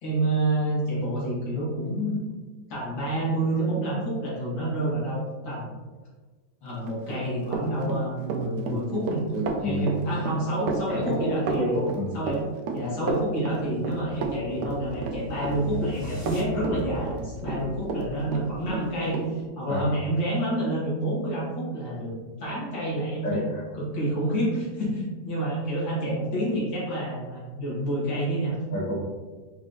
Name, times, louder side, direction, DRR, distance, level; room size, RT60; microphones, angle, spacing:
voice 1, 0.0-2.2 2.7-5.7 6.6-9.2 9.6-11.8 12.1-12.4 12.7-22.1 22.4-23.4 23.7-28.6, right 1 dB, 75° left, -7 dB, 2.2 m, -28 dB
Run, 6.9-18.1 18.3-19.3, right 5 dB, 70° right, 1.1 m, -31 dB
voice 2, 9.3-9.9 10.9-11.3 11.5-12.2 19.7-19.9 23.2-23.6 28.7-29.0, left 1 dB, 45° left, -7 dB, 1.8 m, -29 dB
sound 1, 13.5-19.1, equal, 40° right, 0.6 m, -41 dB
5.1 x 3.7 x 2.6 m, 1.3 s
omnidirectional pair, 2.1 m